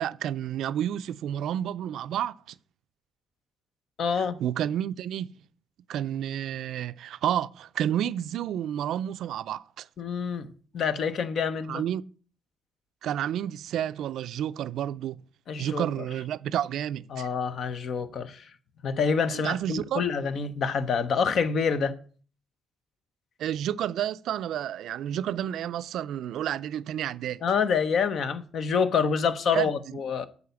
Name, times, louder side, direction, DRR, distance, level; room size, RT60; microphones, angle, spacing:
voice 1, 0.0-2.5 4.1-5.4 5.9-9.9 11.7-12.0 13.0-15.2 15.6-17.3 19.3-20.0 23.4-27.4 29.5-30.0, right 10 dB, 75° right, 0.4 m, -30 dB
voice 2, 4.0-4.4 10.0-10.5 10.7-11.8 15.5-15.9 17.1-18.4 18.8-21.9 27.4-30.3, left 6 dB, 60° left, 0.9 m, -27 dB
8.7 x 4.1 x 6.9 m
cardioid pair, 90°, 0 cm